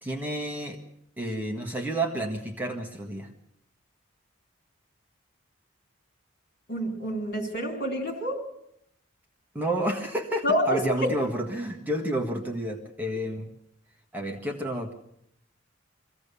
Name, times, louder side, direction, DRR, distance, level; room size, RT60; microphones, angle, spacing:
voice 1, 0.0-0.8 1.2-3.3 9.6-13.5 14.1-14.9, right 1 dB, 10° right, 1 dB, 1.6 m, -30 dB
voice 2, 6.7-8.4 10.4-10.8, equal, 55° left, 2 dB, 3.8 m, -27 dB
23.5 x 16.0 x 6.9 m, 0.76 s
head